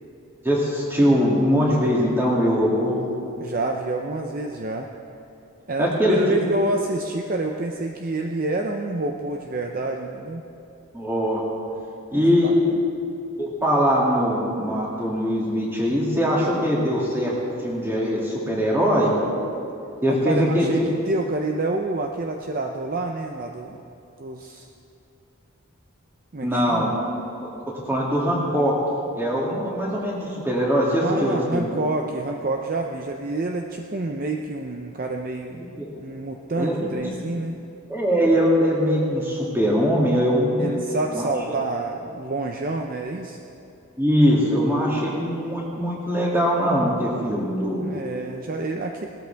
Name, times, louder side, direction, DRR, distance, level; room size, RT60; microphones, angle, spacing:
voice 1, 0.4-3.0 5.8-6.4 10.9-11.4 12.1-12.5 13.4-17.3 17.6-19.1 20.0-20.7 26.4-26.9 27.9-28.8 29.1-31.7 35.8-35.9 36.6-37.1 37.9-40.7 41.1-41.3 44.0-47.9, equal, 10° right, -5 dB, 2.4 m, -21 dB
voice 2, 3.4-4.9 5.7-10.5 12.2-12.8 20.3-20.8 21.1-23.8 24.2-24.7 26.3-26.9 31.0-35.6 36.0-37.6 40.6-43.4 47.8-49.1, right 2 dB, 40° right, 3 dB, 0.6 m, -28 dB
18.5 x 13.0 x 3.5 m, 2.8 s
head